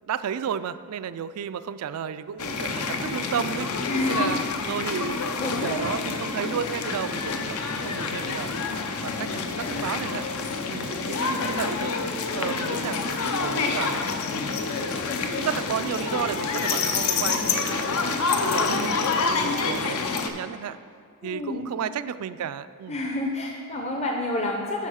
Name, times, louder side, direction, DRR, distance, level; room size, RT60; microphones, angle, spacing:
voice 1, 0.0-4.4 4.7-5.2 5.6-8.5 9.0-10.3 10.6-11.9 12.3-14.6 15.3-20.8 21.2-23.0, right 8 dB, 80° right, 14 dB, 0.3 m, -33 dB
sound 1, 2.4-20.3, left 4 dB, 75° left, 0.7 m, -27 dB
voice 2, 3.9-4.8 5.4-5.9 9.3-9.5 21.2-21.7 22.9-24.9, left 1 dB, 30° left, 1 dB, 0.6 m, -29 dB
9.9 x 4.0 x 6.3 m, 2.3 s
head